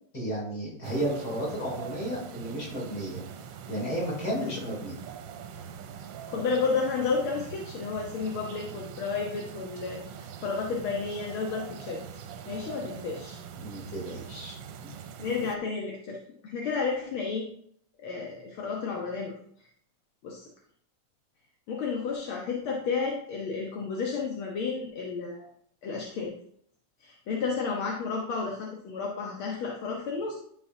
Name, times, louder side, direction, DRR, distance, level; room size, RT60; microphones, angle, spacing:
voice 1, 0.1-3.2 3.7-5.0 13.6-14.6 14.8-14.9, right 1 dB, 45° left, -4 dB, 3.6 m, -33 dB
sound 1, 0.8-15.6, right 7 dB, 70° right, 1.2 m, -43 dB
voice 2, 6.3-12.0 12.5-13.4 15.2-16.2 16.4-17.5 18.0-19.3 20.2-20.5 21.7-25.5 25.8-26.3 27.0-30.3, left 4 dB, 75° left, -1 dB, 1.9 m, -32 dB
11.5 x 5.7 x 2.7 m, 0.66 s
omnidirectional pair, 2.4 m